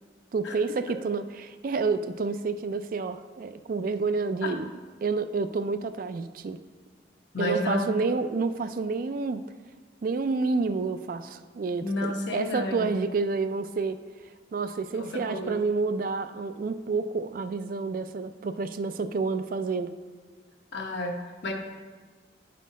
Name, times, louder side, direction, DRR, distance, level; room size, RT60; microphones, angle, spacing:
voice 1, 0.3-4.7 5.0-6.6 7.4-9.4 10.0-14.0 14.5-19.9, right 4 dB, 50° right, 11 dB, 0.3 m, -29 dB
voice 2, 7.3-7.8 11.8-13.0 14.9-15.6 20.7-21.5, left 1 dB, 70° left, 3 dB, 0.9 m, -31 dB
10.5 x 4.2 x 4.1 m, 1.4 s
head